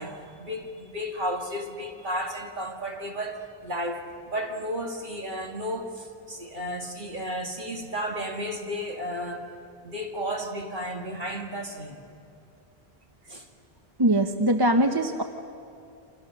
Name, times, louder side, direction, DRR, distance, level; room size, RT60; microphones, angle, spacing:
voice 1, 0.0-9.5 9.8-12.1 13.3-13.5, equal, 50° right, 2 dB, 2.3 m, -33 dB
voice 2, 14.0-15.2, right 1 dB, 25° right, 6 dB, 0.9 m, -22 dB
28.5 x 26.5 x 6.4 m, 2.5 s
omnidirectional pair, 1.0 m